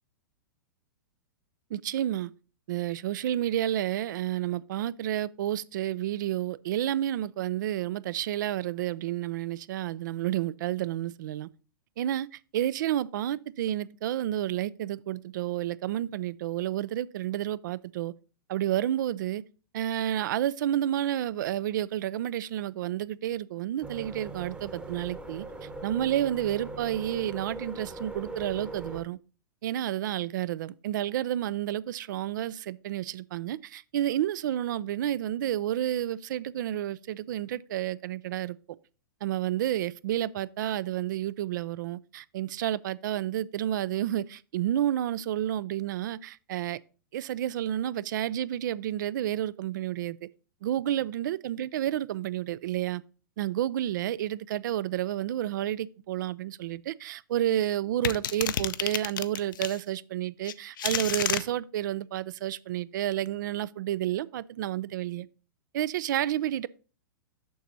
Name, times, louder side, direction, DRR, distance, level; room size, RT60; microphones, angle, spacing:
voice 1, 1.7-2.3 2.7-11.5 12.0-18.1 18.5-19.4 19.7-25.5 25.8-29.2 29.6-38.6 39.2-46.8 47.1-50.3 50.6-53.0 53.4-65.3 65.7-66.7, right 12 dB, 60° right, 0.4 m, -30 dB
sound 1, 23.8-29.0, right 2 dB, 10° right, 0.9 m, -40 dB
sound 2, 58.0-59.8 60.4-61.4, left 10 dB, 65° left, 0.5 m, -30 dB
7.1 x 6.1 x 4.0 m
hypercardioid pair, 110°, 12 cm